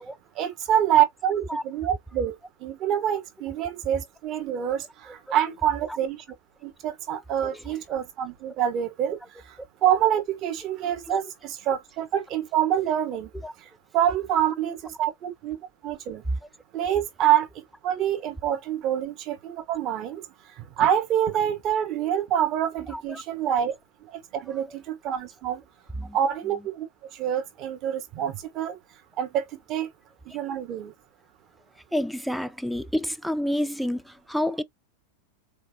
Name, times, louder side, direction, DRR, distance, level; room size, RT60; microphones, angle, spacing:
voice 1, 0.4-2.3 2.6-6.2 6.6-9.2 9.4-13.3 13.6-16.2 16.7-17.5 17.8-20.2 20.6-23.7 24.1-25.6 26.1-26.9 27.1-28.8 29.2-29.9 30.3-30.9, right 10 dB, 35° right, 1.2 m, -26 dB
voice 2, 7.4-7.7 11.1-11.2 13.4-13.5 22.9-23.2 24.5-24.8 25.9-26.2 31.9-34.6, equal, ahead, 0.4 m, -30 dB
4.1 x 3.2 x 2.8 m
figure-of-eight pair, 90°, 0 cm